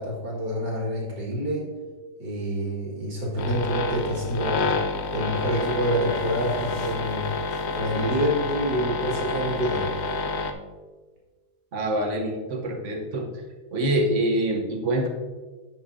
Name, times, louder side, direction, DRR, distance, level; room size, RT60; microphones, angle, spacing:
voice 1, 0.0-1.7 2.2-4.6 5.1-7.2 7.7-9.9, equal, 75° right, -4 dB, 2.5 m, -27 dB
sound 1, 3.4-10.5, left 3 dB, 75° left, 0.6 m, -29 dB
voice 2, 11.7-13.3 13.7-15.1, right 1 dB, 50° right, 2 dB, 1.3 m, -25 dB
9.3 x 6.1 x 2.7 m, 1.3 s
omnidirectional pair, 1.8 m